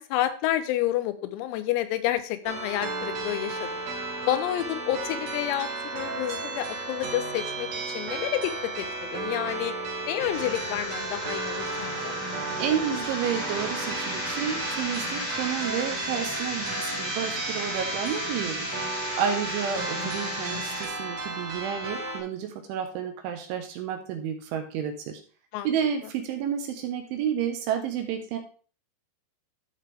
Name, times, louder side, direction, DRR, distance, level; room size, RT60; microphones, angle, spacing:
voice 1, 0.0-3.7 4.3-9.7 10.1-12.2 25.5-25.7 26.0-26.1, left 13 dB, 90° left, 10 dB, 3.6 m, -29 dB
sound 1, 2.4-22.2, right 3 dB, 50° right, 3.4 m, -34 dB
sound 2, 10.3-20.9, left 1 dB, 30° left, 2.2 m, -34 dB
voice 2, 12.6-18.7 19.2-25.2 25.6-28.4, right 8 dB, 75° right, 4 dB, 3.2 m, -30 dB
13.5 x 4.8 x 3.4 m, 0.39 s
omnidirectional pair, 6.0 m